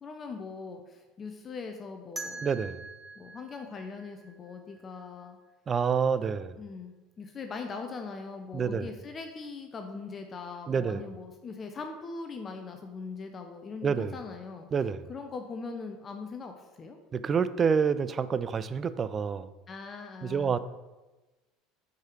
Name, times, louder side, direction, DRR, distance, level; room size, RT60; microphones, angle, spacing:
voice 1, 0.0-2.5 3.2-5.4 6.6-14.7 15.1-17.0 19.7-20.6, left 4 dB, 35° left, 5 dB, 0.6 m, -41 dB
sound 1, 2.2-5.0, right 2 dB, 10° right, 1.0 m, -44 dB
voice 2, 2.4-2.8 5.7-6.5 8.5-8.9 10.7-11.0 13.8-14.2 14.7-15.0 17.1-19.5 20.2-20.6, right 6 dB, 35° right, 14 dB, 0.3 m, -28 dB
4.7 x 4.6 x 4.7 m, 1.1 s
hypercardioid pair, 80°, 0 cm